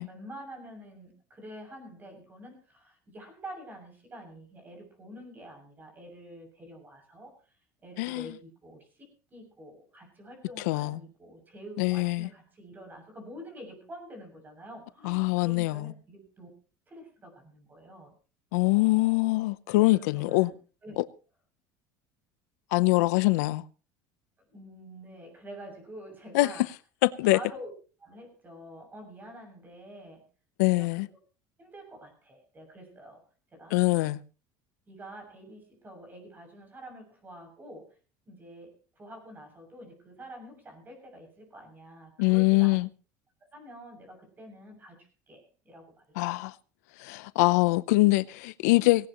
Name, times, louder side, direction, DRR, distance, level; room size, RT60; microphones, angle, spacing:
voice 1, 0.0-7.6 7.8-16.5 16.9-18.1 19.8-20.5 20.8-21.0 24.5-26.7 27.2-27.7 28.0-30.2 30.7-31.0 31.6-33.2 33.5-33.8 34.9-38.0 38.3-42.8 43.5-46.0, equal, 20° right, 7.0 m, -47 dB
voice 2, 10.7-11.0 11.8-12.3 15.0-15.9 18.5-20.5 21.0-21.1 22.7-23.6 26.3-26.5 27.0-27.4 30.6-31.1 33.7-34.2 42.2-42.9 46.2-46.5 47.0-49.1, left 22 dB, 90° left, 0.6 m, -24 dB
18.0 x 18.0 x 3.0 m
cardioid pair, 135°, 9 cm